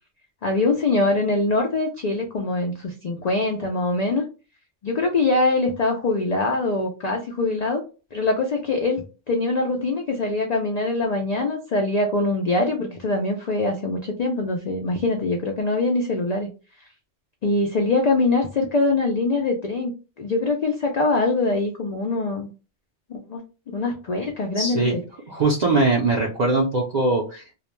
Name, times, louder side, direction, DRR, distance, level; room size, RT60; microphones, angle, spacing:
voice 1, 0.4-4.2 4.8-7.8 8.1-16.5 17.4-19.9 20.2-22.5 23.1-23.4 23.7-25.0, left 2 dB, 85° left, 2 dB, 0.3 m, -23 dB
voice 2, 24.6-25.0 25.3-27.5, right 3 dB, 50° right, -3 dB, 0.5 m, -21 dB
2.3 x 2.1 x 3.0 m, 0.34 s
omnidirectional pair, 1.2 m